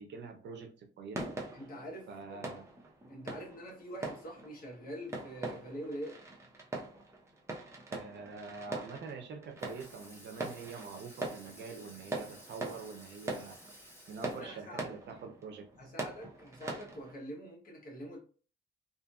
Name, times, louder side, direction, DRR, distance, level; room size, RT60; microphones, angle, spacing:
voice 1, 0.0-1.4 2.1-2.7 7.9-15.9, right 5 dB, 60° right, 5 dB, 0.6 m, -46 dB
sound 1, 1.1-17.1, right 2 dB, 15° right, 0.7 m, -43 dB
voice 2, 1.5-2.6 3.1-6.2 14.2-14.9 15.8-18.2, equal, 45° left, -1 dB, 1.2 m, -45 dB
Water tap faucet / Sink (filling or washing), 9.6-14.8, equal, 10° left, 1.3 m, -55 dB
2.7 x 2.6 x 2.3 m, 0.38 s
cardioid pair, 90°, 20 cm